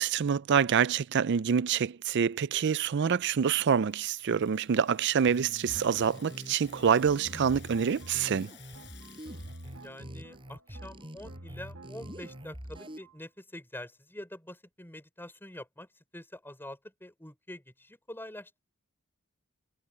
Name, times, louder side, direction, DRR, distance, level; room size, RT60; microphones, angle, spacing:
voice 1, 0.0-8.5, right 7 dB, 55° right, 0.4 m, -26 dB
Rattle (instrument), 3.1-10.0, left 13 dB, 55° left, 6.0 m, -57 dB
sound 1, 5.2-13.2, right 1 dB, 70° right, 2.0 m, -49 dB
sound 2, 5.6-13.0, equal, 25° right, 5.7 m, -46 dB
voice 2, 9.8-18.6, left 1 dB, 10° left, 6.1 m, -46 dB
head